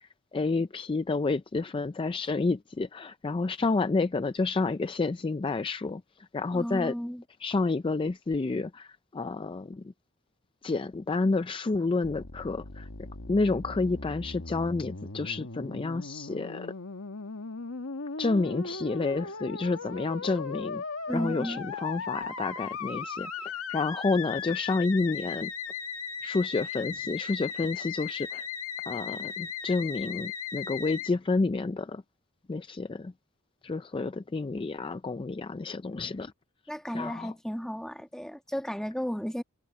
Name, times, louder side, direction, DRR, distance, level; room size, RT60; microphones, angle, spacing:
voice 1, 0.0-6.0 6.3-6.9 7.4-9.8 10.6-12.9 13.3-16.7 18.2-20.8 21.1-25.5 26.2-28.5 28.9-32.0 32.5-33.1 33.6-36.3 36.9-37.3, left 3 dB, 25° left, 0.4 m, -29 dB
voice 2, 6.5-7.2 21.1-21.6 36.7-39.4, equal, 5° left, 1.6 m, -34 dB
Musical instrument, 12.0-31.1, left 5 dB, 85° left, 1.8 m, -37 dB
head